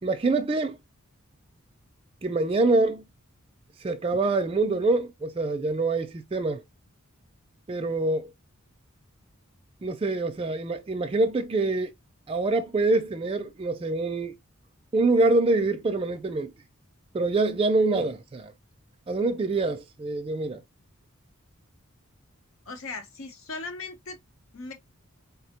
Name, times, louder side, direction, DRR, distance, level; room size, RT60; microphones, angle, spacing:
voice 1, 0.0-0.8 2.2-3.0 3.8-6.6 7.7-8.3 9.8-11.9 12.3-14.4 14.9-16.5 17.1-18.5 19.1-20.6, right 2 dB, 25° right, 0.3 m, -25 dB
voice 2, 22.7-24.2 24.5-24.7, left 3 dB, 70° left, 0.8 m, -38 dB
4.1 x 2.0 x 2.8 m
head